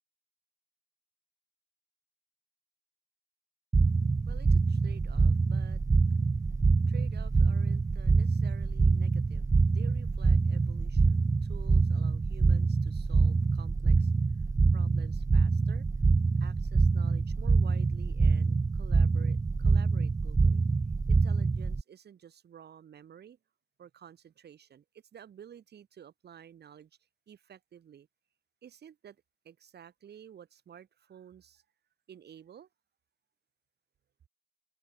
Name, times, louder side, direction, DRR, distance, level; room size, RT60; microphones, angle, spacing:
sound 1, 3.7-21.8, right 4 dB, 15° right, 0.5 m, -25 dB
voice 1, 4.3-5.8 6.9-14.1 14.7-15.9 16.4-20.6 21.1-23.4 23.8-26.9 27.3-28.1 28.6-29.2 29.4-31.6 32.1-32.7, right 9 dB, 55° right, 2.7 m, -52 dB
cardioid pair, 90°, 20 cm